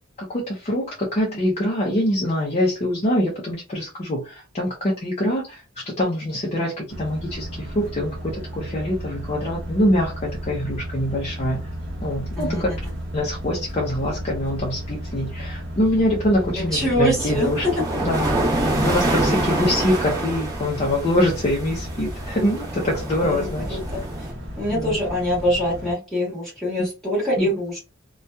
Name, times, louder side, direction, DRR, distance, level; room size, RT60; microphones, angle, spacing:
voice 1, 0.2-11.7 12.0-12.7 13.1-17.7 18.0-23.8 24.7-25.0 27.4-27.6, left 1 dB, 30° left, 0.6 m, -24 dB
sound 1, 6.9-25.9, equal, 60° right, 0.8 m, -34 dB
voice 2, 12.4-12.8 16.6-17.5 23.2-24.0 24.6-27.8, equal, ahead, 1.3 m, -24 dB
sound 2, 17.2-24.3, right 1 dB, 20° right, 0.9 m, -26 dB
2.7 x 2.3 x 2.2 m
head